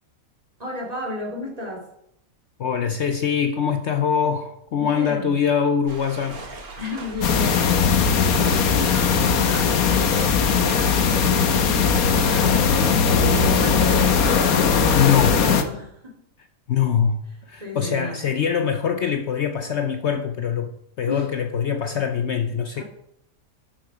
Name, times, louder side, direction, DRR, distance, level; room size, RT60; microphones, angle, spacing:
voice 1, 0.6-1.9 4.8-5.4 6.8-14.5 14.9-16.2 17.6-18.3 21.0-21.3 22.7-22.8, left 2 dB, 25° right, 2.8 m, -33 dB
voice 2, 2.6-6.4 14.9-15.3 16.7-22.8, left 7 dB, 60° left, 0.9 m, -23 dB
sound 1, 5.9-14.2, right 3 dB, 90° right, 2.2 m, -39 dB
sound 2, 7.2-15.6, left 6 dB, 80° left, 1.4 m, -19 dB
11.5 x 7.2 x 5.0 m
omnidirectional pair, 1.5 m